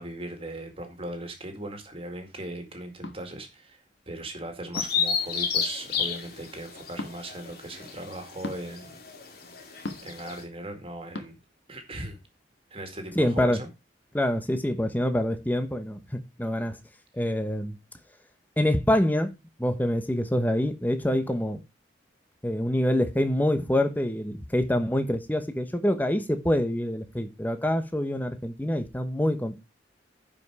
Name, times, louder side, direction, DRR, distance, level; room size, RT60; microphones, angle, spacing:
voice 1, 0.0-9.0 10.0-11.4 11.7-12.2 12.7-13.7, right 1 dB, 30° right, 2.2 m, -38 dB
sound 1, 3.0-3.2 4.7-5.1 6.9-7.1 8.4-8.6 9.8-10.2 11.1-11.3, left 2 dB, 80° left, 1.5 m, -36 dB
Bird vocalization bird call bird song, 4.7-10.4, left 7 dB, 55° left, 2.2 m, -31 dB
voice 2, 13.1-13.6 14.1-16.8 17.1-17.8 18.6-19.3 19.6-21.6 22.4-29.6, left 1 dB, 10° left, 1.0 m, -26 dB
10.5 x 5.3 x 4.7 m
head